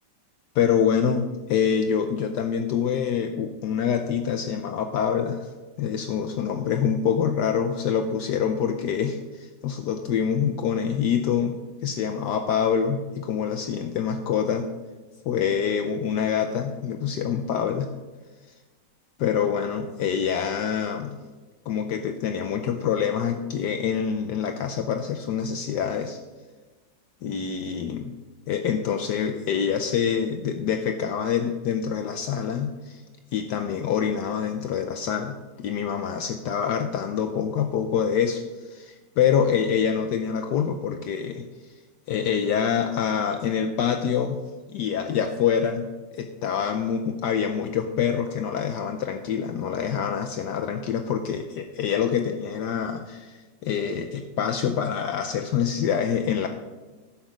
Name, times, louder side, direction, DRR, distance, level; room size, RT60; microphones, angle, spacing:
voice 1, 0.5-5.5 5.8-14.7 15.3-17.9 19.2-21.2 21.7-26.2 27.2-28.1 28.5-33.0 33.3-41.5 42.1-44.4 44.7-56.5, left 7 dB, 70° left, 6 dB, 1.2 m, -26 dB
11.5 x 7.2 x 5.1 m, 1.3 s
omnidirectional pair, 2.0 m